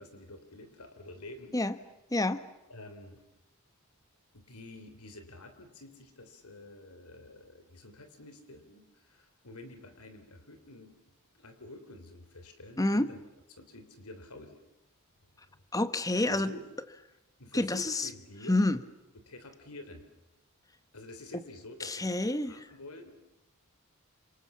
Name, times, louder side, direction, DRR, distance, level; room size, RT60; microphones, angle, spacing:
voice 1, 0.0-1.6 2.7-3.2 4.3-11.0 11.3-13.2 13.5-14.6 15.3-15.6 16.3-16.7 17.4-18.6 19.1-20.1 20.9-23.1, left 2 dB, 85° left, 8 dB, 3.6 m, -49 dB
voice 2, 2.1-2.4 12.8-13.1 15.7-16.5 17.5-18.1 18.5-18.8 21.8-22.6, left 2 dB, 15° left, 13 dB, 1.1 m, -28 dB
29.0 x 26.5 x 7.3 m, 0.94 s
head